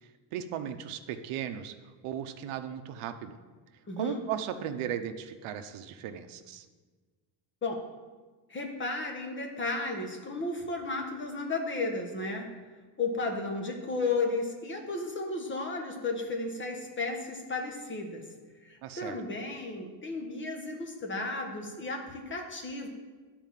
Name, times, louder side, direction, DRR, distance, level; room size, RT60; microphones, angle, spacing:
voice 1, 0.3-1.7 2.0-3.4 4.0-6.7 18.8-19.2, right 9 dB, 85° right, 7 dB, 0.8 m, -36 dB
voice 2, 3.9-4.2 7.6-7.8 8.5-12.5 13.0-18.3 18.6-22.9, left 3 dB, 25° left, 2 dB, 1.3 m, -34 dB
10.5 x 4.5 x 7.4 m, 1.4 s
cardioid pair, 160°, 49 cm